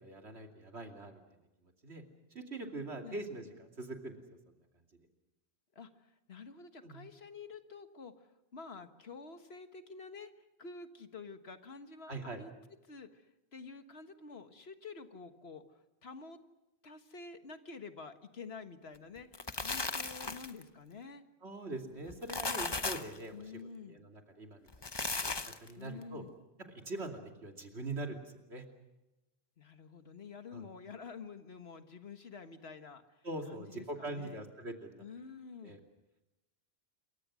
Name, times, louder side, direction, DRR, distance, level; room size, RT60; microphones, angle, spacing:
voice 1, 0.0-2.0 2.3-4.5 6.8-7.1 12.1-12.4 21.4-23.5 23.8-25.3 25.6-26.2 26.7-28.6 30.5-30.7 33.2-35.0 35.6-35.8, right 2 dB, 90° right, 3 dB, 3.1 m, -43 dB
voice 2, 5.8-8.1 8.5-10.3 10.6-12.5 12.9-13.2 13.5-15.7 16.0-16.4 16.8-21.2 23.3-24.0 25.8-26.4 29.6-33.0 33.5-34.4 35.0-35.7, left 4 dB, 75° left, 8 dB, 1.7 m, -49 dB
sound 1, 19.2-20.6 22.1-23.2 24.7-25.7, left 3 dB, 25° left, 0.8 m, -36 dB
27.5 x 23.5 x 6.3 m, 1.0 s
omnidirectional pair, 1.1 m